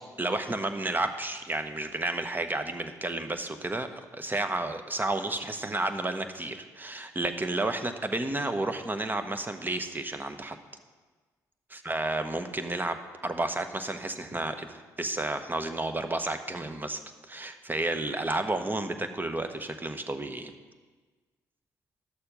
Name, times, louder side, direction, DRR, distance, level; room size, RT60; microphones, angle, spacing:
voice 1, 0.2-10.6 11.8-13.0 13.2-20.5, right 2 dB, 20° right, 8 dB, 1.1 m, -31 dB
11.5 x 6.9 x 5.3 m, 1.4 s
hypercardioid pair, 45°, 9 cm